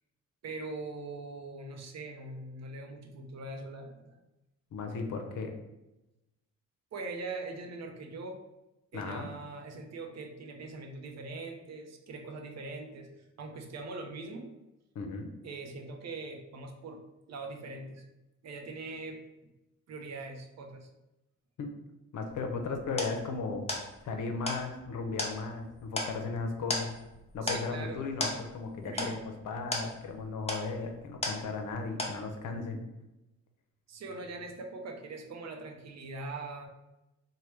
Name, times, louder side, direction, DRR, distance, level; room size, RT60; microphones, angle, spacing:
voice 1, 0.4-4.2 6.9-8.4 8.9-13.1 13.4-14.5 15.4-18.0 18.4-19.2 19.9-20.9 27.4-28.1 28.8-29.2 33.9-36.7, right 3 dB, 55° right, 3 dB, 0.6 m, -42 dB
voice 2, 4.7-5.5 8.9-9.3 15.0-15.3 21.6-21.7 22.1-23.7 24.0-26.9 27.3-29.2 29.4-32.8, left 4 dB, 70° left, 4 dB, 0.6 m, -36 dB
sound 1, 22.3-31.7 32.0-32.6, left 2 dB, 20° left, 0.6 m, -37 dB
3.0 x 2.2 x 3.3 m, 0.96 s
cardioid pair, 95°, 31 cm